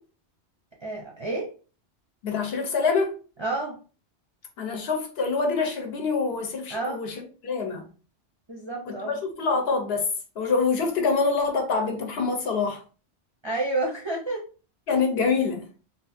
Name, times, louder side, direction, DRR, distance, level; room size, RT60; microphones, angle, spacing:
voice 1, 0.8-1.5 3.4-3.8 6.7-7.0 8.5-9.1 13.4-14.4, right 2 dB, 35° right, 0.5 m, -29 dB
voice 2, 2.2-3.2 4.6-7.1 7.4-7.9 8.9-9.0 9.2-10.1 10.4-12.8 14.9-15.7, left 4 dB, 65° left, 0.9 m, -25 dB
2.7 x 2.5 x 2.5 m
omnidirectional pair, 1.2 m